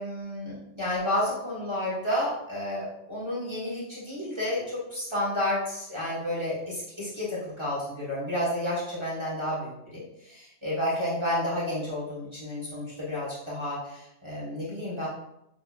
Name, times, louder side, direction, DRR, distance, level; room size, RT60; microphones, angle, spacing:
voice 1, 0.0-15.1, left 1 dB, 25° right, -8 dB, 1.2 m, -31 dB
6.5 x 3.0 x 2.4 m, 0.83 s
omnidirectional pair, 1.2 m